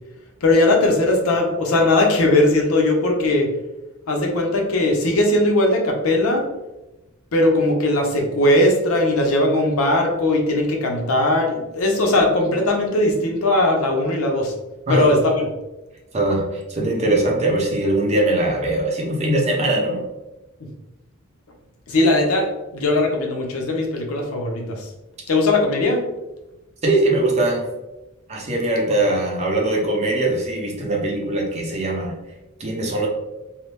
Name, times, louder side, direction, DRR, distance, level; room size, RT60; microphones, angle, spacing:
voice 1, 0.4-3.5 4.1-6.4 7.3-14.5 14.9-15.5 20.6-20.7 21.9-24.9 25.3-26.0 28.9-29.0, left 2 dB, 80° left, 1 dB, 0.6 m, -19 dB
voice 2, 16.7-20.0 26.8-27.6 28.3-32.1 32.6-33.1, right 2 dB, 30° right, -1 dB, 0.6 m, -21 dB
2.8 x 2.0 x 3.2 m, 1.0 s
head